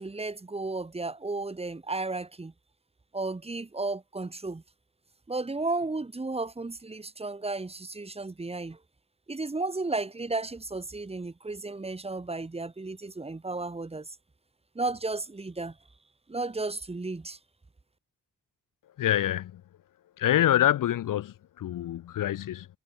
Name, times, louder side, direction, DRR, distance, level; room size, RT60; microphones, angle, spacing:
voice 1, 0.0-2.5 3.1-4.6 5.3-8.8 9.3-14.2 14.8-15.8 16.3-17.4, right 3 dB, 15° right, 1.8 m, -33 dB
voice 2, 19.0-19.6 20.2-22.7, left 12 dB, 65° left, 0.7 m, -26 dB
wide cardioid pair, 135°, 35 cm